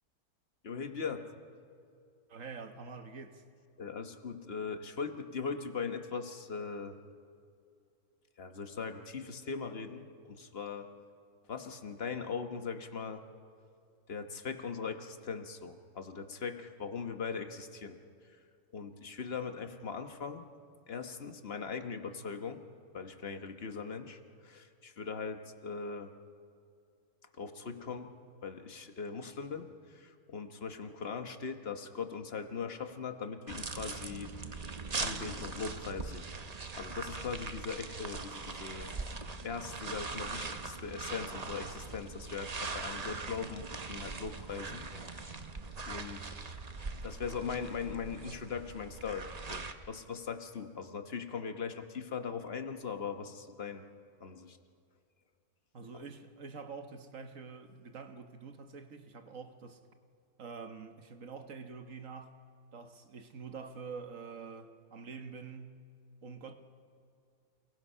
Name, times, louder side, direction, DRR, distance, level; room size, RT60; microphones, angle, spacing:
voice 1, 0.6-1.3 3.8-7.0 8.4-10.9 11.5-13.2 14.1-18.0 18.7-20.5 20.9-22.6 22.9-26.1 27.3-28.1 28.4-34.3 35.0-36.2 36.7-38.9 39.4-45.5 45.9-46.3 47.0-53.8 54.2-54.6 55.9-56.0, left 5 dB, 45° left, 1.3 m, -40 dB
voice 2, 2.3-3.4 55.7-59.8 60.4-62.4 62.7-65.8 66.2-66.5, right 5 dB, 60° right, 1.6 m, -46 dB
sound 1, 33.5-49.7, right 4 dB, 30° right, 0.9 m, -41 dB
29.0 x 19.0 x 5.6 m
omnidirectional pair, 1.6 m